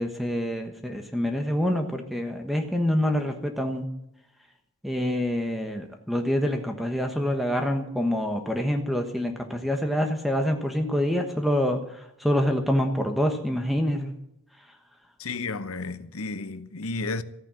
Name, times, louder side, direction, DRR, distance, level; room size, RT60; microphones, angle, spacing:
voice 1, 0.0-3.9 4.8-11.8 12.2-14.1, equal, ahead, 1.2 m, -26 dB
voice 2, 15.2-17.2, left 3 dB, 80° left, 0.9 m, -32 dB
14.5 x 9.8 x 7.6 m
head